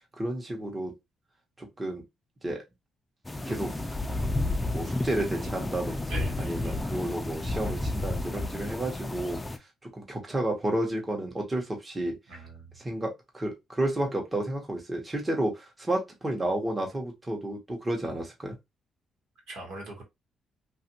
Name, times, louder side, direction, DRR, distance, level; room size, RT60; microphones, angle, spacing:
voice 1, 0.2-0.9 1.6-2.0 2.4-2.6 3.4-3.7 4.7-9.4 9.9-12.2 12.8-18.6, right 1 dB, 20° right, 0.9 m, -31 dB
sound 1, 3.2-9.6, left 2 dB, 15° left, 0.4 m, -31 dB
voice 2, 6.1-6.8 12.3-12.7 19.5-20.0, right 2 dB, 80° right, 1.4 m, -41 dB
2.6 x 2.4 x 2.8 m
cardioid pair, 90°, 0 cm